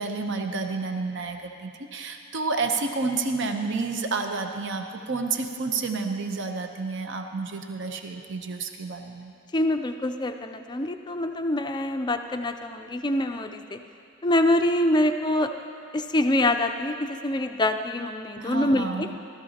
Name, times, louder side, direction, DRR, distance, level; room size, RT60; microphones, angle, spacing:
voice 1, 0.0-9.3 18.4-19.2, right 4 dB, 55° right, 5 dB, 0.8 m, -30 dB
voice 2, 9.5-13.8 14.2-15.5 15.9-19.1, left 1 dB, 20° left, 6 dB, 0.4 m, -25 dB
16.5 x 13.5 x 2.9 m, 2.6 s
head